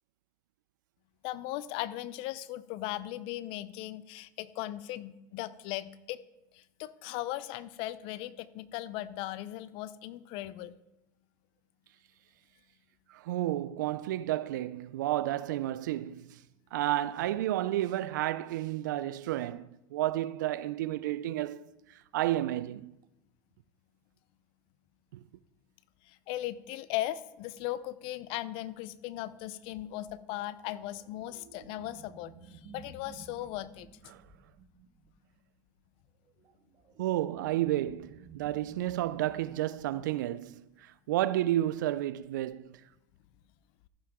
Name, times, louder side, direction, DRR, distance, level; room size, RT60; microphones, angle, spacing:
voice 1, 1.2-6.2 6.5-10.8 26.1-33.9, left 15 dB, 65° left, 0.6 m, -38 dB
voice 2, 13.1-16.4 16.7-21.7 22.1-22.9 34.1-34.2 37.0-42.8, right 14 dB, 85° right, 0.4 m, -31 dB
sound 1, 30.2-35.3 36.3-40.0, right 6 dB, 45° right, 1.6 m, -55 dB
14.5 x 7.4 x 3.6 m
supercardioid pair, 95°, 10 cm